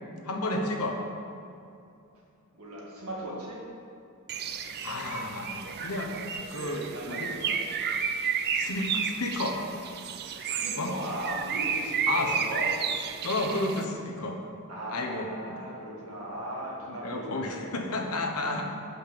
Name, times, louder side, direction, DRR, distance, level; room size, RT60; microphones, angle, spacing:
voice 1, 0.2-1.0 4.8-6.1 6.5-7.4 8.5-9.6 10.8-10.9 12.1-12.3 13.2-14.4 14.9-15.6 16.9-18.6, left 2 dB, 85° left, 2 dB, 1.0 m, -32 dB
voice 2, 2.5-3.6 6.5-7.6 10.4-12.8 14.7-18.1 18.4-18.6, right 1 dB, 85° right, -3 dB, 1.7 m, -38 dB
Bird, 4.3-13.8, right 6 dB, 50° right, 0.4 m, -32 dB
5.8 x 5.5 x 6.8 m, 2.6 s
head